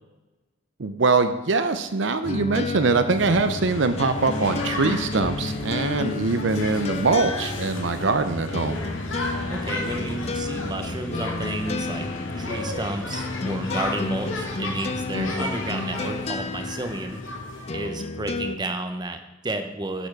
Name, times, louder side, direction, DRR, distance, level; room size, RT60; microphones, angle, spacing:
voice 1, 0.8-8.8 15.2-15.6, right 3 dB, 65° right, 10 dB, 0.6 m, -23 dB
sound 1, 2.2-18.6, left 3 dB, 30° left, 0.4 m, -32 dB
sound 2, 3.1-18.1, left 2 dB, 75° left, 2.1 m, -33 dB
voice 2, 9.5-17.2 17.7-20.1, right 2 dB, 20° right, 7 dB, 0.9 m, -32 dB
9.8 x 7.0 x 6.0 m, 1.1 s
head